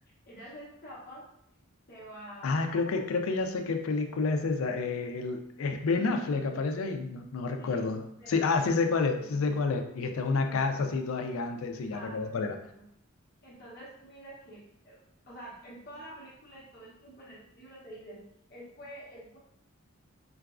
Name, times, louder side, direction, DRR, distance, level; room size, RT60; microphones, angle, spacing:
voice 1, 0.3-1.3 1.9-3.0 7.6-9.4 10.4-10.7 11.9-12.8 13.4-15.0 15.3-18.2 18.5-19.4, right 1 dB, 50° left, -6 dB, 0.8 m, -48 dB
voice 2, 2.4-12.6, left 4 dB, 80° left, 5 dB, 0.4 m, -29 dB
3.8 x 2.3 x 2.4 m, 0.74 s
head